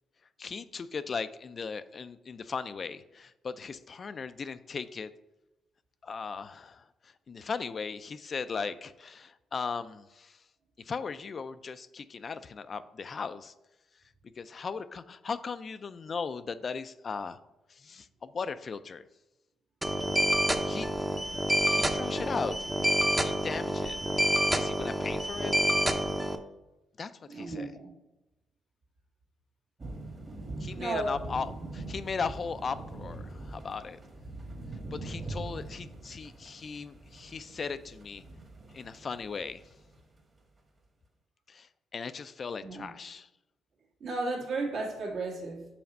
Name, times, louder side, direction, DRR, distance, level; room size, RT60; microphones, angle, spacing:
voice 1, 0.4-5.1 6.0-10.4 10.8-13.5 14.4-17.4 17.7-19.0 20.6-20.9 21.6-22.6 23.1-24.0 24.6-25.5 27.0-27.7 30.6-34.0 34.9-38.2 38.7-39.6 41.5-43.3, left 5 dB, 40° left, 12 dB, 0.3 m, -37 dB
sound 1, 19.8-26.4, equal, 10° right, 0.6 m, -28 dB
voice 2, 27.3-27.9 30.7-31.1 42.6-42.9 44.0-45.7, right 3 dB, 65° right, -1 dB, 1.8 m, -34 dB
sound 2, 29.8-39.9, right 2 dB, 35° right, 1.5 m, -43 dB
5.8 x 4.2 x 5.3 m, 0.97 s
cardioid pair, 90°, 0 cm